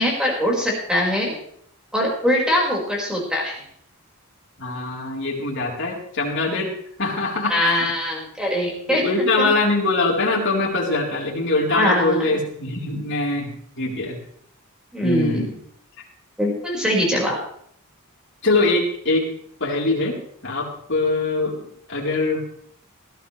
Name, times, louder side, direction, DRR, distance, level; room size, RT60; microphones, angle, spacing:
voice 1, 0.0-1.3 1.9-3.6 7.5-9.0 9.4-9.5 11.7-12.3 14.9-15.5 16.4-17.4, left 1 dB, 5° right, -3 dB, 5.4 m, -22 dB
voice 2, 4.6-6.7 7.0-7.9 8.9-13.5 13.8-14.2 15.0-15.5 18.4-19.3 19.6-20.2 20.4-21.5 21.9-22.4, left 2 dB, 55° left, -3 dB, 4.1 m, -23 dB
19.5 x 14.5 x 3.4 m, 0.66 s
head